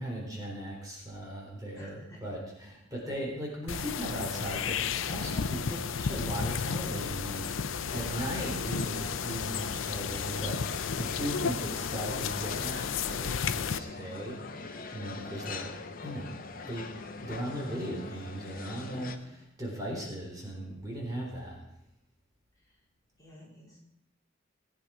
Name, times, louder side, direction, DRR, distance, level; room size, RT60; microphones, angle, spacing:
voice 1, 0.0-14.4 14.9-15.7 16.0-16.3 16.7-16.9 17.2-21.6, right 1 dB, 20° right, -3 dB, 3.6 m, -38 dB
voice 2, 1.8-2.3 22.5-22.9 23.2-23.8, left 1 dB, 20° left, -4 dB, 3.9 m, -54 dB
sound 1, 3.7-13.8, left 6 dB, 80° left, 0.6 m, -33 dB
sound 2, 7.9-19.2, left 3 dB, 45° left, 1.1 m, -43 dB
19.0 x 9.4 x 4.9 m, 0.83 s
head